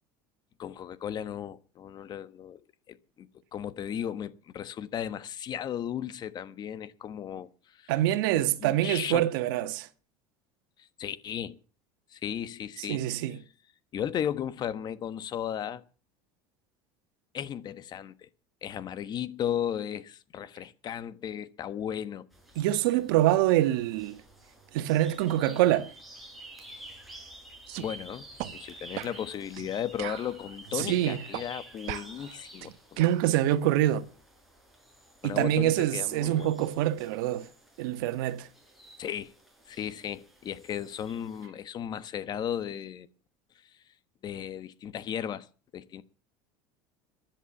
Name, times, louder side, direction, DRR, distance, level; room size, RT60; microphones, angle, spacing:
voice 1, 0.6-2.6 2.9-7.9 8.3-9.3 10.8-11.6 12.1-13.0 13.9-15.8 17.3-18.3 18.6-22.3 27.8-28.3 28.5-32.7 35.2-36.5 39.0-39.3 39.7-43.1 44.2-45.5 45.7-46.0, left 9 dB, 40° left, 1.3 m, -35 dB
voice 2, 7.9-9.9 12.8-13.4 22.5-24.2 24.7-25.9 30.7-31.2 33.0-34.0 35.2-37.5 37.8-38.5, right 13 dB, 85° right, 1.6 m, -25 dB
sound 1, 22.3-41.5, right 1 dB, ahead, 5.8 m, -51 dB
sound 2, 27.7-27.9 28.4-28.5 29.0-29.2 29.6-29.7 30.0-30.9 31.3-31.5 31.9-33.3, right 18 dB, 70° right, 1.1 m, -38 dB
16.0 x 11.0 x 7.1 m
supercardioid pair, 125°, 11 cm